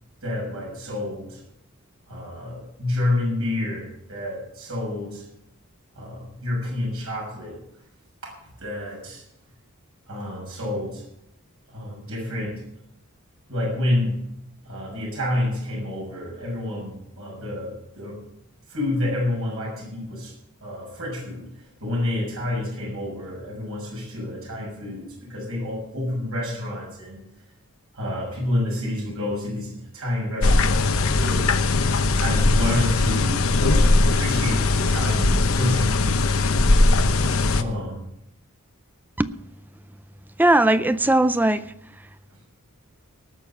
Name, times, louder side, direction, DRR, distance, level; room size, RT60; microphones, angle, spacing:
voice 1, 0.2-1.4 2.1-5.3 5.9-7.6 8.2-8.3 8.6-9.2 10.1-11.0 11.7-12.6 13.5-14.1 14.6-18.2 18.7-20.3 20.6-27.2 27.9-31.5 32.1-36.0 37.5-38.1, left 1 dB, 70° right, -3 dB, 6.6 m, -29 dB
sound 1, 30.4-37.6, left 2 dB, 70° left, 0.9 m, -20 dB
voice 2, 40.4-42.1, right 1 dB, 10° right, 13 dB, 0.4 m, -20 dB
19.0 x 6.7 x 7.3 m, 0.80 s
head